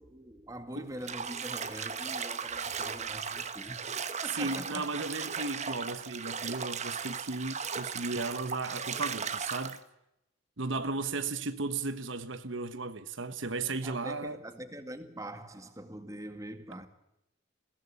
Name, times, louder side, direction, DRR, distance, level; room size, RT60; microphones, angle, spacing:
voice 1, 0.0-3.8 4.2-4.8 13.8-16.9, right 1 dB, 15° right, 2.0 m, -43 dB
Bathtub (filling or washing), 1.0-9.8, right 6 dB, 35° right, 1.3 m, -37 dB
voice 2, 4.3-9.8 10.6-14.4, right 3 dB, 70° right, 1.2 m, -35 dB
21.5 x 17.0 x 8.2 m
head